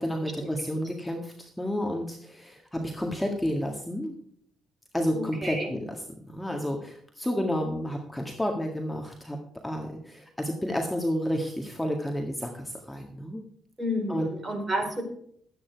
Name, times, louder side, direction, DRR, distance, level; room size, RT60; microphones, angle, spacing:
voice 1, 0.0-4.1 4.9-5.8 6.3-9.4 9.6-13.4 14.1-14.3, equal, 10° left, 2 dB, 1.8 m, -30 dB
voice 2, 5.1-5.8 13.8-15.0, equal, 25° right, 3 dB, 4.4 m, -31 dB
13.0 x 9.0 x 4.6 m, 0.64 s
cardioid pair, 90°, 0 cm